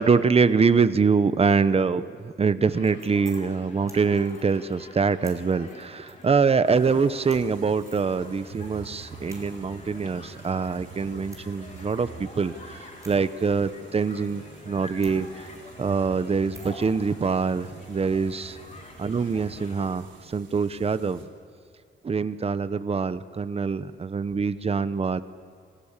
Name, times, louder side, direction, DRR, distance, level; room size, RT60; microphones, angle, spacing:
voice 1, 0.0-15.5 15.8-18.6 19.0-21.2 22.0-25.2, right 5 dB, 30° right, 14 dB, 0.9 m, -24 dB
sound 1, 2.5-19.4, right 2 dB, 15° right, 4.9 m, -57 dB
Human group actions, 2.6-19.9, left 3 dB, 40° left, 3.3 m, -47 dB
sound 2, 6.6-21.2, right 5 dB, 70° right, 3.8 m, -47 dB
29.0 x 22.5 x 7.4 m, 2.2 s
wide cardioid pair, 140°, 20 cm